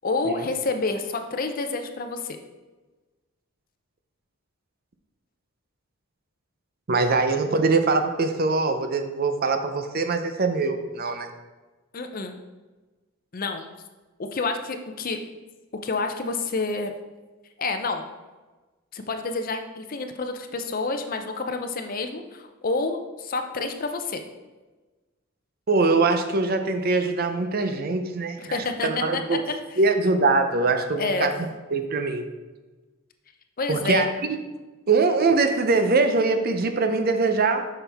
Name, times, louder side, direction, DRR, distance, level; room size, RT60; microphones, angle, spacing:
voice 1, 0.0-2.4 11.9-12.4 13.3-13.6 14.2-15.2 15.8-16.9 17.6-18.0 18.9-24.2 28.4-29.4 29.7-29.8 31.0-31.3 33.6-34.0, left 3 dB, 40° left, 6 dB, 0.6 m, -28 dB
voice 2, 6.9-11.3 25.7-29.4 29.8-31.3 31.7-32.3 33.7-34.1 34.9-37.7, right 3 dB, 45° right, 7 dB, 0.6 m, -22 dB
7.9 x 5.9 x 3.5 m, 1.2 s
head